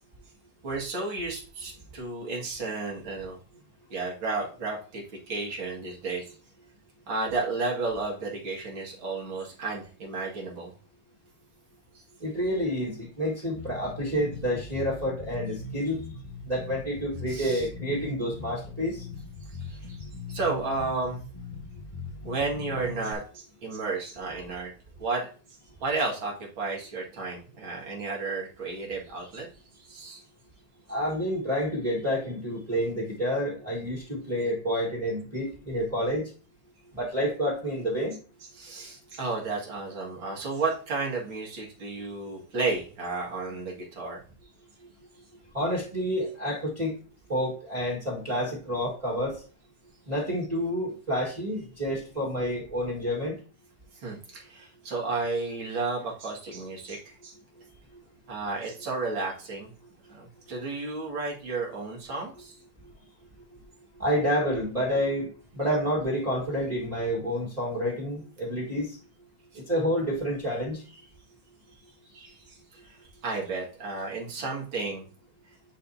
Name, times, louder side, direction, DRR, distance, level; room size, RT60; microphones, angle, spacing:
voice 1, 0.6-3.4 3.9-6.3 7.1-10.7 17.3-17.6 19.6-21.2 22.2-24.7 25.0-25.3 25.8-29.5 29.8-30.2 38.5-44.2 54.0-57.3 58.3-59.7 60.1-62.6 72.1-72.6 72.8-73.0 73.2-75.0, right 3 dB, 85° right, -2 dB, 2.8 m, -32 dB
voice 2, 12.2-16.0 16.4-19.0 30.9-36.3 36.9-38.2 45.5-46.9 47.3-49.4 50.1-53.4 57.9-58.0 62.4-62.5 63.9-65.3 65.5-69.0 69.5-70.8, equal, 20° right, -6 dB, 1.6 m, -29 dB
Bass guitar, 13.5-23.1, left 3 dB, 30° left, 0.6 m, -40 dB
10.0 x 4.2 x 2.7 m, 0.38 s
omnidirectional pair, 2.1 m